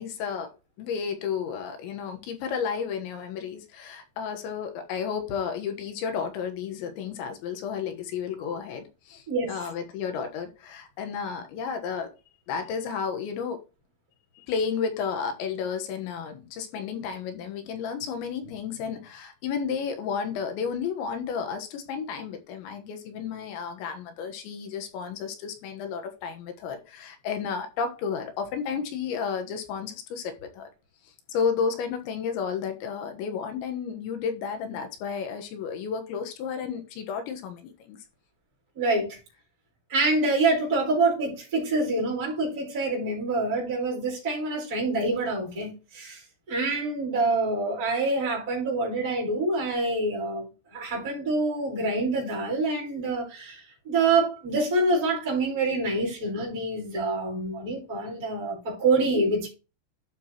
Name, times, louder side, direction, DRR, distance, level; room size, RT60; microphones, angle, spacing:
voice 1, 0.0-12.1 12.5-13.6 14.4-30.7 31.1-38.0, left 6 dB, 85° left, 3.6 m, -32 dB
voice 2, 38.8-39.2 39.9-46.2 46.5-59.5, right 2 dB, 20° right, 4.5 m, -26 dB
11.5 x 6.1 x 3.0 m
omnidirectional pair, 5.2 m